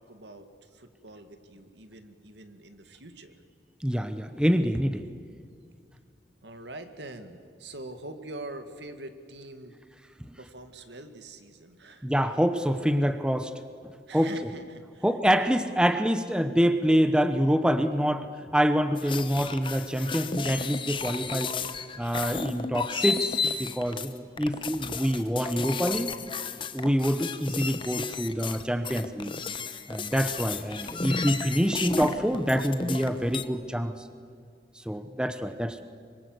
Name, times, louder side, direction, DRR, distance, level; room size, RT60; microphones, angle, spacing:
voice 1, 0.0-3.4 6.4-9.7 10.4-12.1 14.1-15.1 15.4-15.6, right 2 dB, 80° right, 8 dB, 2.1 m, -44 dB
voice 2, 3.8-5.0 12.0-13.5 14.1-14.3 15.0-21.5 22.0-26.1 26.7-29.3 29.9-33.9 34.9-35.8, equal, 5° right, 9 dB, 0.9 m, -26 dB
sound 1, 19.0-33.4, left 4 dB, 30° left, 1.0 m, -33 dB
25.0 x 24.5 x 7.9 m, 2.2 s
head